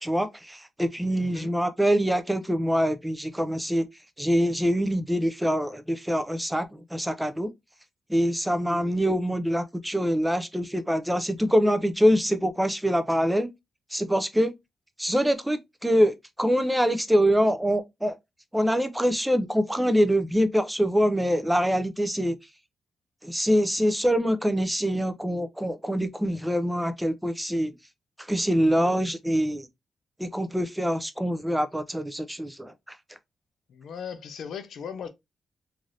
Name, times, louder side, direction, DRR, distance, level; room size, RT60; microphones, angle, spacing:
voice 1, 0.0-3.9 4.2-7.5 8.1-13.5 13.9-14.5 15.0-18.2 18.5-22.4 23.2-27.8 28.3-29.7 30.2-33.0, equal, 5° right, 0.3 m, -24 dB
voice 2, 1.2-1.5 33.7-35.1, left 7 dB, 85° left, 0.5 m, -37 dB
3.2 x 2.4 x 2.6 m
wide cardioid pair, 175°, 0 cm